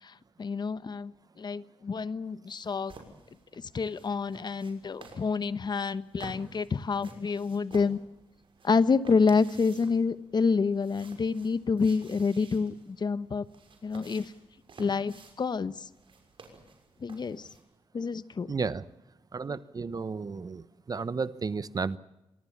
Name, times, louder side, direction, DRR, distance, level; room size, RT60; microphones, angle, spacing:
voice 1, 0.0-2.9 3.6-8.0 8.6-13.5 13.8-14.3 14.8-15.9 17.0-17.5 17.9-18.6, left 5 dB, 45° left, 15 dB, 1.1 m, -28 dB
sound 1, 2.9-17.6, right 3 dB, 60° right, 6.2 m, -53 dB
voice 2, 18.5-18.8 19.3-22.0, right 4 dB, 40° right, 17 dB, 0.9 m, -33 dB
26.0 x 19.5 x 7.2 m, 0.94 s
cardioid pair, 80°, 10 cm